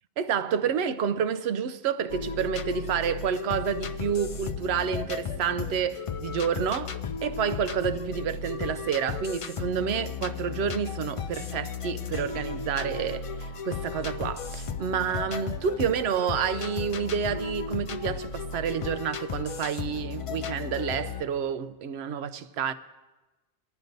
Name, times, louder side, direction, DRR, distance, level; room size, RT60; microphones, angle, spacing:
voice 1, 0.2-6.9 7.2-22.7, right 7 dB, 90° right, 0.9 m, -29 dB
sound 1, 2.1-21.2, left 6 dB, 55° left, 0.3 m, -35 dB
19.5 x 10.5 x 2.6 m
omnidirectional pair, 1.1 m